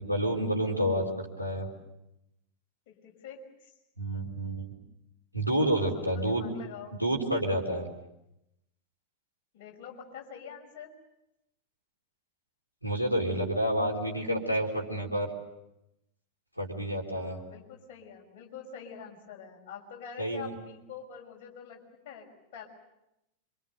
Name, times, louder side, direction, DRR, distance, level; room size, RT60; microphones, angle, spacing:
voice 1, 0.0-1.7 4.0-4.7 5.3-6.5 7.0-7.9 12.8-15.3 16.6-17.4 20.2-20.5, right 1 dB, 90° right, -1 dB, 3.9 m, -29 dB
voice 2, 2.9-3.7 5.6-6.9 9.5-10.9 17.1-21.8 22.0-22.7, left 7 dB, 45° left, 0 dB, 6.1 m, -46 dB
27.0 x 25.0 x 6.6 m, 0.88 s
figure-of-eight pair, 90°, 0 cm